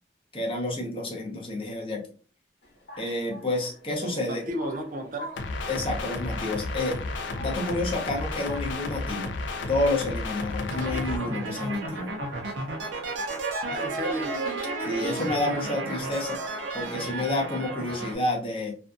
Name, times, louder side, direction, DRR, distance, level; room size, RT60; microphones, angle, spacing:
voice 1, 0.3-2.0 3.0-4.5 5.7-7.0 7.4-9.3 9.7-12.1 14.8-16.4 16.7-18.7, left 2 dB, 30° left, -1 dB, 0.7 m, -29 dB
sound 1, 2.6-17.5, left 1 dB, 60° left, 1.0 m, -48 dB
voice 2, 4.0-5.4 13.7-14.3, equal, 45° right, 4 dB, 0.5 m, -33 dB
sound 2, 5.4-11.2, left 3 dB, 80° left, 0.4 m, -32 dB
sound 3, 10.7-18.1, right 2 dB, 85° right, 0.6 m, -32 dB
2.5 x 2.3 x 2.4 m, 0.40 s
head